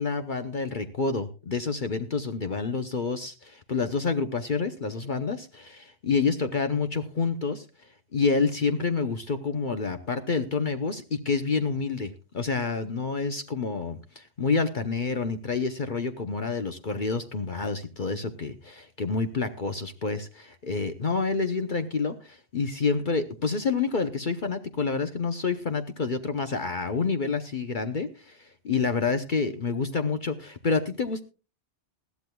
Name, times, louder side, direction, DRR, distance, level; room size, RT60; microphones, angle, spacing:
voice 1, 0.0-7.6 8.1-31.2, left 4 dB, 45° left, 7 dB, 0.9 m, -28 dB
20.0 x 14.0 x 2.3 m, 0.31 s
omnidirectional pair, 1.2 m